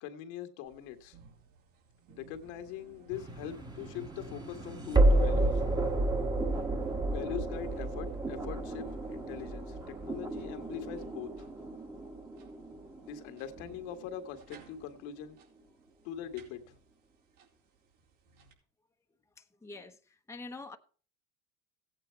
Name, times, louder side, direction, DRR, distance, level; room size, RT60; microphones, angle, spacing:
voice 1, 0.0-1.2 2.2-5.6 7.1-11.5 13.0-15.4 16.0-16.7, left 9 dB, 75° left, 1.8 m, -42 dB
sound 1, 0.6-18.5, right 5 dB, 70° right, 4.4 m, -58 dB
sound 2, 3.1-14.1, right 2 dB, 10° right, 1.4 m, -31 dB
voice 2, 19.6-20.0 20.3-20.8, left 3 dB, 10° left, 1.0 m, -44 dB
15.5 x 8.9 x 4.6 m
supercardioid pair, 115°, 35 cm